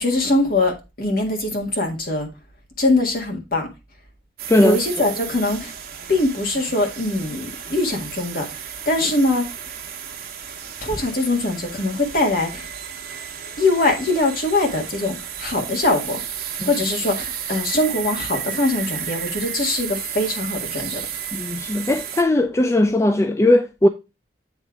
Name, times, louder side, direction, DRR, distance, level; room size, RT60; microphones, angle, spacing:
voice 1, 0.0-2.3 2.8-3.7 4.6-5.7 6.1-9.5 10.8-12.7 13.6-16.2 16.6-21.0, left 2 dB, 55° left, 1.7 m, -22 dB
sound 1, 4.4-22.2, right 9 dB, 55° right, 1.1 m, -33 dB
voice 2, 4.5-4.8 16.6-16.7 21.3-23.9, left 1 dB, 15° left, 0.4 m, -18 dB
8.3 x 3.3 x 4.6 m
head